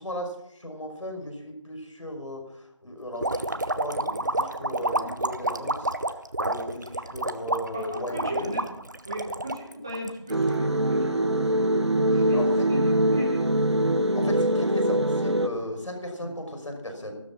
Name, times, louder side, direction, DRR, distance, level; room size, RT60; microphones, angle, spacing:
voice 1, 0.0-8.4 12.1-12.7 14.1-17.1, left 1 dB, 85° left, 4 dB, 5.7 m, -36 dB
sound 1, 3.2-10.5, right 2 dB, 40° right, 0.8 m, -29 dB
voice 2, 7.7-8.7 9.0-11.7 12.0-13.4 16.2-16.3, equal, 10° right, -2 dB, 1.2 m, -36 dB
sound 2, 10.3-15.5, right 1 dB, 60° right, 1.3 m, -23 dB
13.0 x 13.0 x 6.1 m, 0.83 s
figure-of-eight pair, 175°, 16 cm